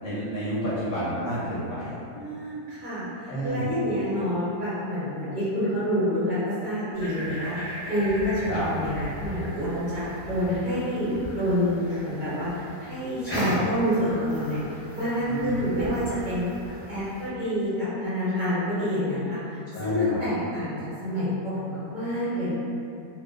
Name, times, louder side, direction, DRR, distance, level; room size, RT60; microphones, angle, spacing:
voice 1, 0.0-2.0 3.3-3.7 8.5-8.7 15.3-15.6 19.7-20.2, equal, 65° left, -10 dB, 0.9 m, -30 dB
voice 2, 2.1-19.4 19.8-20.7 21.0-22.5, equal, 40° right, -16 dB, 0.8 m, -28 dB
sound 1, 6.9-17.3, right 1 dB, 5° right, 0.8 m, -37 dB
2.5 x 2.3 x 2.2 m, 2.6 s
omnidirectional pair, 1.7 m